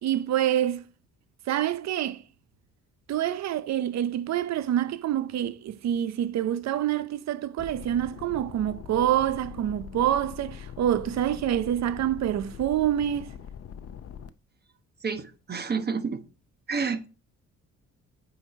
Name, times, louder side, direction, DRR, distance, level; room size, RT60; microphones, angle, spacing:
voice 1, 0.0-0.8 1.5-2.2 3.1-13.3, right 11 dB, 60° right, 0.6 m, -26 dB
sound 1, 7.6-14.3, left 8 dB, 50° left, 0.7 m, -42 dB
voice 2, 15.0-16.2 16.7-17.1, right 5 dB, 35° right, 1.0 m, -29 dB
8.6 x 4.7 x 4.2 m
cardioid pair, 90°, 30 cm